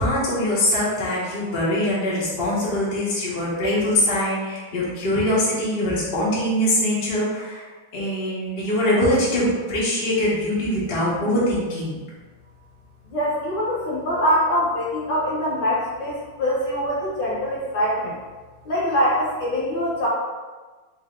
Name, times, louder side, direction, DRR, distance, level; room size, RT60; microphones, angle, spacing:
voice 1, 0.0-7.7 7.9-12.0, left 1 dB, 35° left, -8 dB, 1.0 m, -23 dB
voice 2, 13.1-18.2 18.6-20.1, equal, 65° left, -7 dB, 1.7 m, -23 dB
3.5 x 2.8 x 3.6 m, 1.3 s
omnidirectional pair, 2.2 m